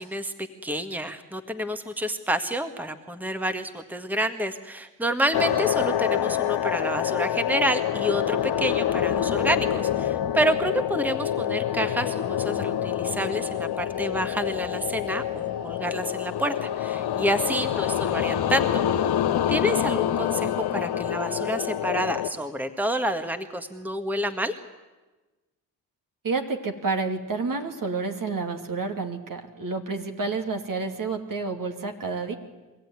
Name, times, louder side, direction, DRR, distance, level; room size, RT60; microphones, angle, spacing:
voice 1, 0.0-18.8 19.5-24.5, right 1 dB, 5° right, 8 dB, 1.6 m, -28 dB
sound 1, 5.3-22.3, left 10 dB, 70° left, 1.2 m, -26 dB
voice 2, 26.2-32.4, right 4 dB, 50° right, 4 dB, 2.9 m, -29 dB
23.5 x 15.5 x 9.7 m, 1.2 s
supercardioid pair, 50°, 41 cm